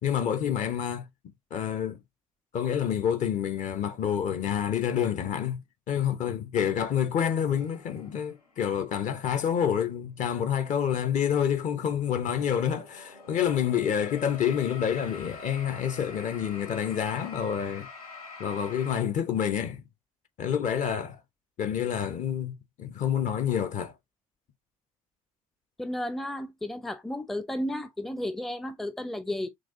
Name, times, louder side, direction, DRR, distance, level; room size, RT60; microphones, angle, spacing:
voice 1, 0.0-1.1 1.5-2.0 2.5-5.6 5.9-17.9 18.4-19.8 20.4-21.2 21.6-23.9, left 8 dB, 45° left, 0.9 m, -28 dB
sound 1, 7.5-8.7 9.5-9.6 11.1-19.0, left 4 dB, 85° left, 1.0 m, -46 dB
voice 2, 25.8-29.5, left 1 dB, ahead, 0.5 m, -33 dB
6.1 x 2.4 x 2.6 m
figure-of-eight pair, 55°, 18 cm